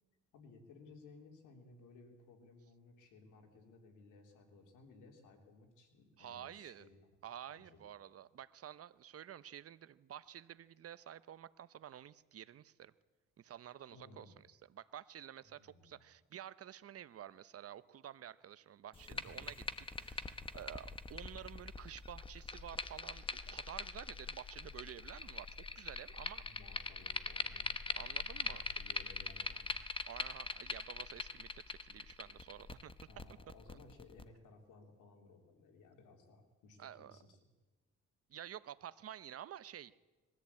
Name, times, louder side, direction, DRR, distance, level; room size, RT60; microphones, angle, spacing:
voice 1, 0.3-7.0 7.5-7.8 13.9-14.4 15.6-16.0 19.1-19.6 26.4-29.9 33.1-37.4, left 3 dB, 90° left, 3 dB, 3.5 m, -60 dB
voice 2, 6.2-6.9 7.2-12.9 13.4-25.5 25.7-26.4 28.0-28.6 30.1-32.9 33.7-33.8 36.8-37.2 38.3-40.0, right 10 dB, 50° right, 16 dB, 0.8 m, -51 dB
sound 1, 18.9-34.2, left 3 dB, 15° left, 1.1 m, -43 dB
21.0 x 14.5 x 8.5 m, 1.3 s
cardioid pair, 90°, 30 cm